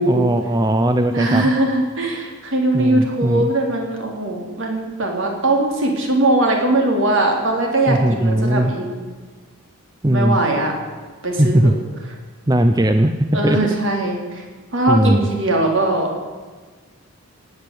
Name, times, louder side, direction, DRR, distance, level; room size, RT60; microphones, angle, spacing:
voice 1, 0.0-1.5 2.7-3.5 7.9-8.7 10.0-10.4 11.4-11.8 12.5-13.8 14.9-15.2, right 1 dB, 15° right, 8 dB, 0.5 m, -18 dB
voice 2, 1.1-9.0 10.1-10.7 11.2-11.7 13.3-14.4 14.7-16.1, right 2 dB, 60° right, 1 dB, 3.6 m, -20 dB
17.5 x 8.9 x 8.4 m, 1.4 s
head